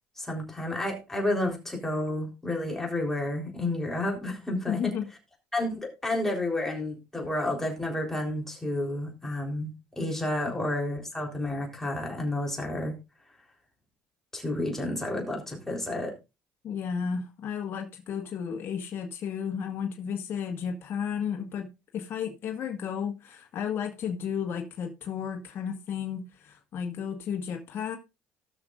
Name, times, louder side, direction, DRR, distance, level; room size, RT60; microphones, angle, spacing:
voice 1, 0.2-4.9 5.5-13.0 14.3-16.1, left 1 dB, 10° left, 3.8 m, -31 dB
voice 2, 4.7-5.1 16.6-28.0, left 7 dB, 50° left, 1.6 m, -33 dB
19.0 x 6.3 x 2.5 m
cardioid pair, 105°, 5 cm